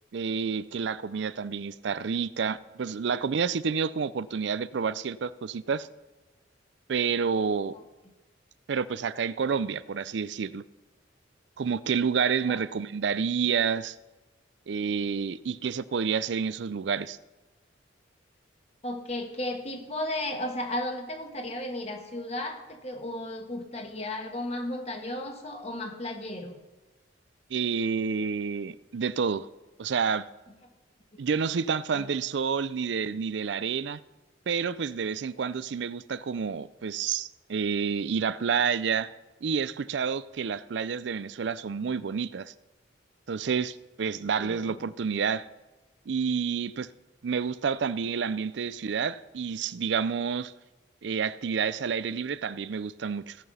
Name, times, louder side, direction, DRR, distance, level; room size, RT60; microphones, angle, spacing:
voice 1, 0.1-5.9 6.9-7.8 8.7-10.6 11.6-14.0 14.7-17.2 27.5-29.5 29.8-30.3 31.2-34.0 34.5-39.1 39.4-42.5 43.3-45.5 46.1-46.9 47.2-50.5 51.0-53.4, right 6 dB, 70° right, 0.4 m, -29 dB
voice 2, 18.8-26.6 31.1-31.2 31.9-32.1 44.4-44.9, left 1 dB, 35° left, 1.5 m, -34 dB
16.5 x 5.9 x 5.5 m
head